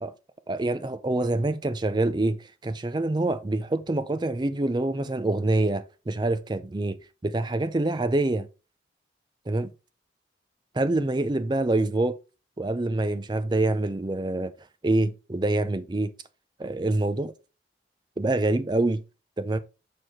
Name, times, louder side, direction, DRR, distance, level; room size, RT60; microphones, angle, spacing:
voice 1, 0.5-7.0 7.2-8.5 9.5-9.7 10.7-12.2 12.6-14.5 14.8-16.1 16.6-17.3 18.2-19.0 19.4-19.6, right 2 dB, 25° right, 0.4 m, -26 dB
6.3 x 4.6 x 3.6 m
head